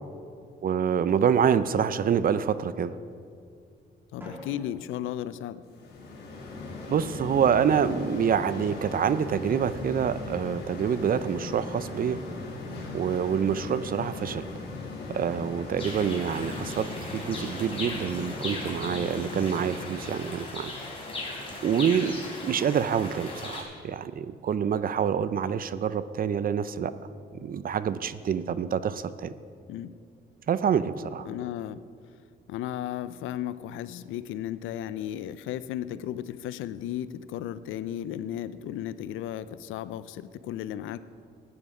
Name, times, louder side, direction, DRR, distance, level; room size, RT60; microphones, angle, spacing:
voice 1, 0.6-2.9 6.9-12.2 12.9-14.5 15.1-20.7 21.3-26.9 27.4-29.3 30.5-31.3, right 7 dB, 45° right, 14 dB, 0.5 m, -27 dB
voice 2, 4.1-5.6 29.7-29.9 31.3-31.8 32.5-41.0, left 11 dB, 85° left, 15 dB, 0.5 m, -35 dB
Drum, 4.2-6.2, equal, 10° right, 3.5 m, -48 dB
sound 1, 5.7-20.2, left 3 dB, 60° left, 3.5 m, -38 dB
sound 2, 15.8-23.6, left 2 dB, 30° left, 3.8 m, -38 dB
14.5 x 9.8 x 4.9 m, 2.3 s
cardioid pair, 90°, 20 cm